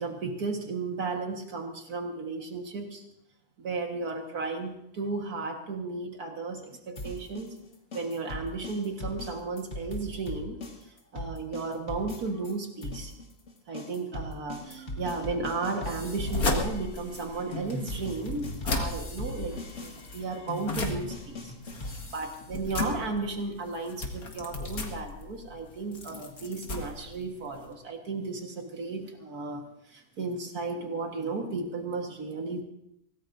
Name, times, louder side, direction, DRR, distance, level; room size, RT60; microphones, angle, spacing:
voice 1, 0.0-3.0 3.6-7.5 7.9-13.1 13.7-19.6 19.8-32.6, right 3 dB, 80° right, 2 dB, 2.0 m, -34 dB
sound 1, 7.0-12.5 12.8-22.6, left 1 dB, 50° left, 2.2 m, -39 dB
Bass guitar, 14.6-20.9, right 7 dB, 25° left, 3.8 m, -56 dB
sound 2, 16.0-27.7, left 3 dB, 75° left, 2.4 m, -35 dB
24.0 x 18.5 x 2.6 m, 0.81 s
omnidirectional pair, 1.6 m